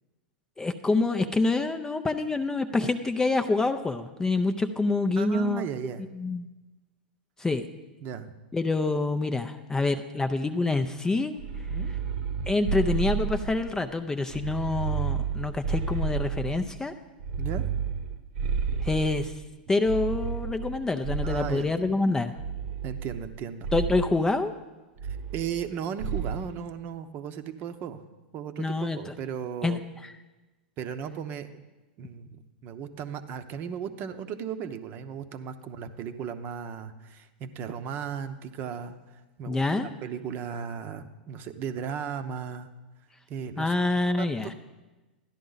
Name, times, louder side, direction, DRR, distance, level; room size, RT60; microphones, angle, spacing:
voice 1, 0.6-5.6 6.2-6.5 7.4-7.7 8.5-11.3 12.5-16.9 18.8-19.3 19.7-22.4 23.7-24.5 28.6-29.1 29.6-29.8 30.0-30.1 39.5-39.9 43.6-44.5, left 3 dB, 10° left, 8 dB, 0.5 m, -26 dB
voice 2, 5.2-6.0 8.0-8.3 11.7-11.9 17.4-17.6 21.2-21.9 22.8-23.7 25.3-28.0 28.3-29.8 30.8-31.5 32.0-42.7 43.3-43.8 44.2-44.5, right 7 dB, 40° right, 10 dB, 0.8 m, -36 dB
sound 1, 11.4-13.8 14.3-16.7 17.2-19.4 19.8-21.7 22.4-23.3 23.6-24.1 25.0-25.7 26.0-26.5, right 6 dB, 60° right, 1.0 m, -31 dB
13.0 x 10.5 x 4.0 m, 1.1 s
hypercardioid pair, 115°, 5 cm